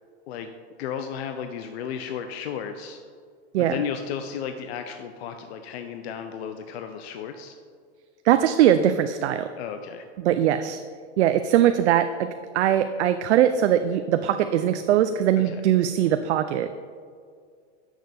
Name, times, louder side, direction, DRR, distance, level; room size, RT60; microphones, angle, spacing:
voice 1, 0.8-3.0 3.6-7.6 9.5-10.0 15.4-15.6, left 7 dB, 65° left, 7 dB, 0.6 m, -34 dB
voice 2, 8.2-9.5 10.2-10.8 11.2-12.3 12.5-16.7, right 11 dB, 75° right, 9 dB, 0.5 m, -21 dB
10.0 x 6.4 x 3.4 m, 2.1 s
hypercardioid pair, 120°, 34 cm